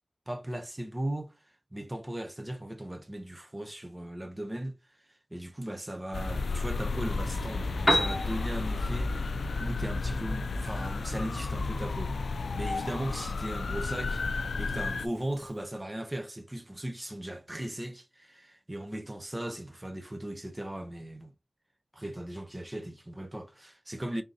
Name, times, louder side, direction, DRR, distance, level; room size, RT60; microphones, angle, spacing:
voice 1, 0.3-1.3 1.7-4.7 5.3-21.3 21.9-24.2, right 1 dB, 20° right, 0.6 m, -38 dB
sound 1, 6.1-15.1, left 3 dB, 90° left, 0.3 m, -32 dB
Piano, 7.6-15.6, equal, 5° left, 1.0 m, -36 dB
3.6 x 2.7 x 3.9 m
wide cardioid pair, 70°, 0 cm